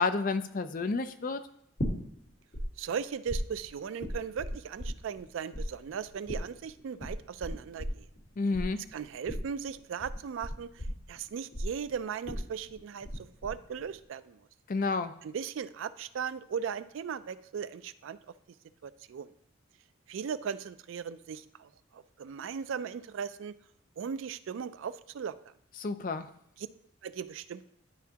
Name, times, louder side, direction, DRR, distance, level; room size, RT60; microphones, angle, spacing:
voice 1, 0.0-1.4 8.4-8.8 14.7-15.1 25.8-26.3, left 4 dB, 40° left, 10 dB, 0.4 m, -30 dB
sound 1, 1.8-2.6 2.9-5.3 5.5-13.2 13.4-13.9, equal, 65° left, 1.9 m, -36 dB
voice 2, 2.8-8.1 8.9-10.8 11.1-14.4 15.2-18.2 18.8-19.3 20.1-23.6 24.0-25.3 26.6-26.7 27.0-27.6, right 7 dB, 70° right, 14 dB, 0.3 m, -38 dB
11.0 x 4.6 x 2.8 m, 0.73 s
head